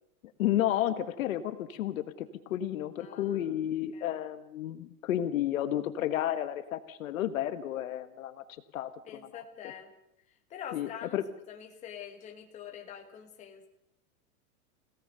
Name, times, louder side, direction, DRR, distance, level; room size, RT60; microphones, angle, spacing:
voice 1, 0.4-8.4 8.7-9.4 10.7-11.2, left 12 dB, 60° left, 11 dB, 1.4 m, -32 dB
voice 2, 3.0-3.5 3.9-4.2 9.1-9.9 10.5-11.2 11.5-13.7, left 8 dB, 15° left, 3 dB, 2.0 m, -45 dB
28.0 x 17.5 x 6.7 m, 0.84 s
supercardioid pair, 180°, 45 cm